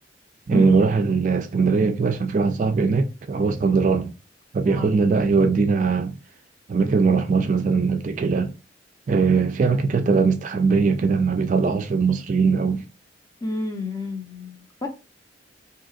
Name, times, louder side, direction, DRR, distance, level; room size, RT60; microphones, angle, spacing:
voice 1, 0.5-4.1 4.5-6.1 6.7-8.5 9.1-12.9, right 4 dB, 40° right, 0.3 m, -20 dB
voice 2, 13.4-14.9, left 2 dB, 20° left, 0.6 m, -30 dB
3.6 x 2.8 x 2.4 m
head